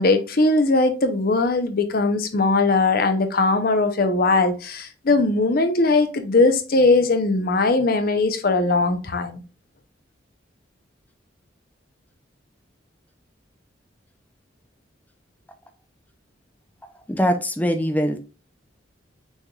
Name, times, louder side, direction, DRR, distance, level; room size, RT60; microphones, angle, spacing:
voice 1, 0.0-9.4, left 3 dB, 50° left, 0.7 m, -20 dB
voice 2, 17.1-18.2, equal, 10° left, 0.5 m, -22 dB
6.2 x 3.4 x 2.3 m
head